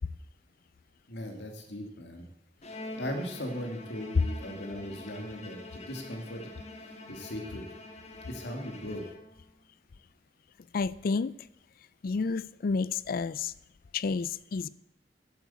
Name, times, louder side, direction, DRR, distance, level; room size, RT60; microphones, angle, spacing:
voice 1, 1.1-2.2 2.7-6.5 6.8-7.6 8.3-9.0, equal, 75° left, 3 dB, 2.2 m, -38 dB
Bowed string instrument, 2.6-9.6, left 2 dB, 40° left, 1.7 m, -46 dB
voice 2, 10.7-11.3 12.0-13.5 13.9-14.7, left 4 dB, 55° left, 19 dB, 0.4 m, -30 dB
11.5 x 8.3 x 7.9 m, 0.76 s
head